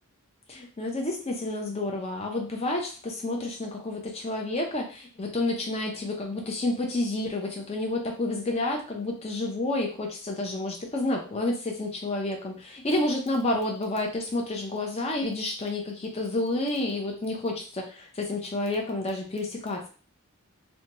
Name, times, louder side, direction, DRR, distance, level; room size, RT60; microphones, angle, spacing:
voice 1, 0.5-19.9, left 2 dB, 30° left, 1 dB, 0.5 m, -30 dB
2.7 x 2.2 x 2.9 m, 0.37 s
head